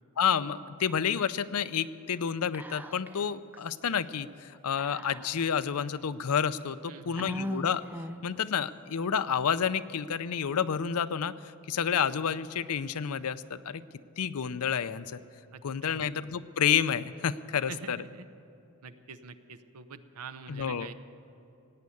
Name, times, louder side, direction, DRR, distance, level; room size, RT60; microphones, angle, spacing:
voice 1, 0.2-7.8 8.2-11.3 11.7-13.8 14.2-15.2 15.6-18.0 20.5-20.9, left 7 dB, 80° left, 14 dB, 0.5 m, -29 dB
Whispering, 2.5-3.2 3.5-3.6 4.8-5.6 6.3-6.4 7.2-8.4, equal, 10° right, 0.4 m, -38 dB
voice 2, 6.9-7.4 15.5-16.1 17.7-18.3 18.8-20.9, right 5 dB, 85° right, 11 dB, 0.8 m, -45 dB
17.0 x 9.4 x 8.5 m, 2.8 s
head